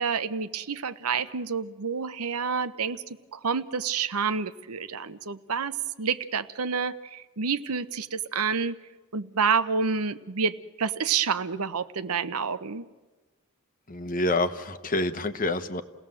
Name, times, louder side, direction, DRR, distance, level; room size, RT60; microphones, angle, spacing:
voice 1, 0.0-3.0 3.3-8.7 9.1-12.8, right 5 dB, 90° right, 12 dB, 0.9 m, -28 dB
voice 2, 13.9-15.8, left 2 dB, 40° left, 10 dB, 1.2 m, -27 dB
29.5 x 18.0 x 7.6 m, 1.2 s
head